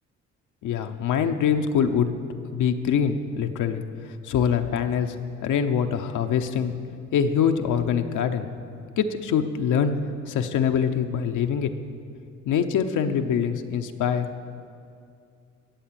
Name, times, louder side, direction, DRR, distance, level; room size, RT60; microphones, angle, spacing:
voice 1, 0.6-2.1 2.5-3.8 4.2-5.1 5.4-6.7 7.1-8.5 9.0-9.9 10.3-11.7 12.5-14.3, left 7 dB, 80° left, 6 dB, 1.0 m, -24 dB
15.0 x 7.4 x 8.8 m, 2.4 s
cardioid pair, 90°, 30 cm